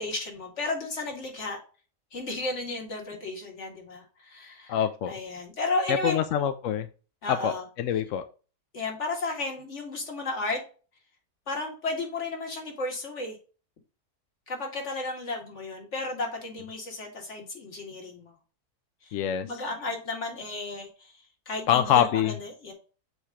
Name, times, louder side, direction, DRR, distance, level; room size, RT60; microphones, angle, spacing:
voice 1, 0.0-1.6 2.1-6.2 7.2-7.6 8.7-10.6 11.5-13.4 14.5-18.3 19.1-21.1 21.5-22.7, left 2 dB, 50° left, 1 dB, 2.1 m, -33 dB
voice 2, 4.7-5.1 5.9-6.9 7.3-7.5 7.8-8.2 19.1-19.4 21.7-22.3, left 9 dB, 70° left, 9 dB, 0.8 m, -24 dB
8.0 x 3.0 x 4.8 m, 0.36 s
omnidirectional pair, 1.6 m